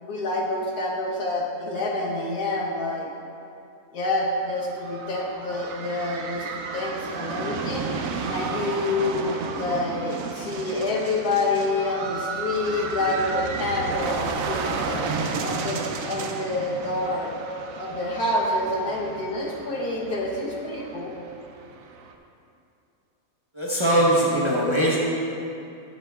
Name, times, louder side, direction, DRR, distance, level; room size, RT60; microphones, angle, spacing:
voice 1, 0.0-3.1 3.9-6.5 6.7-7.9 8.3-15.1 15.4-17.3 17.8-21.1, left 2 dB, 85° left, -3 dB, 1.7 m, -27 dB
sound 1, 4.5-22.1, right 4 dB, 70° right, 1.0 m, -33 dB
voice 2, 23.5-25.0, right 1 dB, 20° right, -6 dB, 1.0 m, -21 dB
15.5 x 6.6 x 2.4 m, 2.6 s
omnidirectional pair, 1.6 m